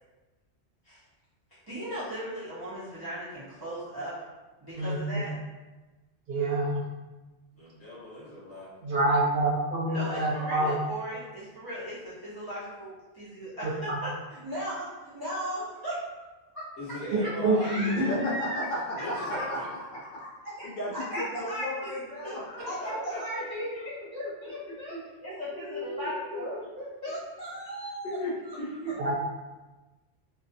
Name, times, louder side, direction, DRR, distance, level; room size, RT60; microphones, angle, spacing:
voice 1, 1.5-4.2 4.6-5.3 9.9-16.0 17.2-17.3 17.6-18.6 20.6-22.0 22.7-28.2 28.4-28.6, equal, 30° right, -11 dB, 0.4 m, -37 dB
voice 2, 4.8-5.2 6.3-6.8 8.8-10.8 13.6-14.0 17.4-18.3 29.0-29.1, right 1 dB, 70° right, -4 dB, 0.8 m, -27 dB
voice 3, 7.5-8.7 16.8-18.2 18.9-19.6 22.2-23.5, left 1 dB, 15° left, -11 dB, 1.0 m, -39 dB
voice 4, 18.1-20.3 20.6-23.0 23.3-23.4 24.7-25.0 25.5-26.4 28.0-29.1, equal, 65° left, -4 dB, 0.7 m, -35 dB
2.3 x 2.2 x 2.6 m, 1.2 s
omnidirectional pair, 1.1 m